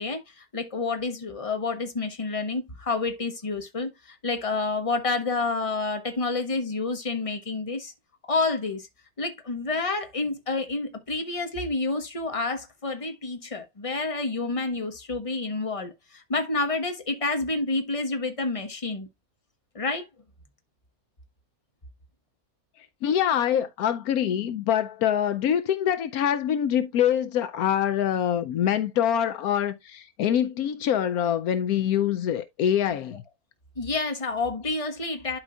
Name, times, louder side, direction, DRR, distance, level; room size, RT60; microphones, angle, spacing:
voice 1, 0.0-7.9 8.3-8.9 9.2-19.1 19.7-20.0 33.8-35.4, left 3 dB, 25° left, 1.3 m, -29 dB
voice 2, 23.0-33.2, left 9 dB, 80° left, 1.1 m, -25 dB
12.0 x 4.9 x 2.4 m
omnidirectional pair, 1.6 m